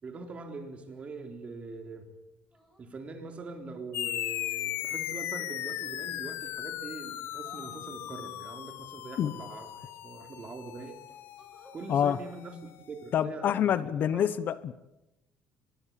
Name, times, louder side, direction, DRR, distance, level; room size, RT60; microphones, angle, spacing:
voice 1, 0.0-2.0 2.8-11.0 11.7-14.3, right 3 dB, 30° right, 5 dB, 3.8 m, -43 dB
sound 1, 0.8-1.3 2.5-2.9 5.1-5.5 7.3-7.8 9.3-9.8 10.6-10.7 11.1-11.8 13.5-13.7, equal, ahead, 6.4 m, -59 dB
sound 2, 3.9-12.8, left 13 dB, 75° left, 1.4 m, -38 dB
voice 2, 13.1-14.7, left 9 dB, 50° left, 16 dB, 0.9 m, -27 dB
23.5 x 21.0 x 7.6 m, 0.93 s
cardioid pair, 140°, 4 cm